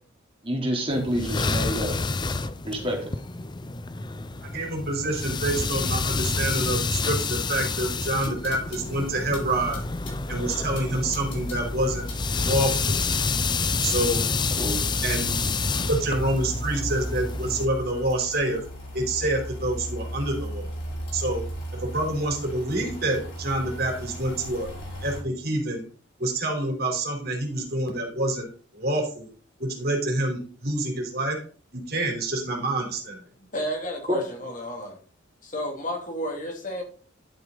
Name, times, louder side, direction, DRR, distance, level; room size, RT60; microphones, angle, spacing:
voice 1, 0.4-2.0 2.6-3.2 14.6-14.8 34.1-34.2, equal, 25° right, 3.2 m, -28 dB
sound 1, 0.9-17.7, left 4 dB, 20° left, 0.5 m, -29 dB
voice 2, 4.4-9.8 10.3-12.1 12.3-12.9 13.8-14.3 15.0-15.3 15.9-18.6 18.9-20.7 21.1-21.4 21.8-24.7 25.0-25.8 26.2-28.5 28.7-29.3 29.6-31.4 31.7-33.2, right 1 dB, 50° right, 3.7 m, -27 dB
sound 2, 8.2-25.2, equal, 65° left, 6.1 m, -36 dB
voice 3, 33.4-35.0 35.4-36.8, equal, 40° left, 2.7 m, -32 dB
11.5 x 6.8 x 3.9 m
head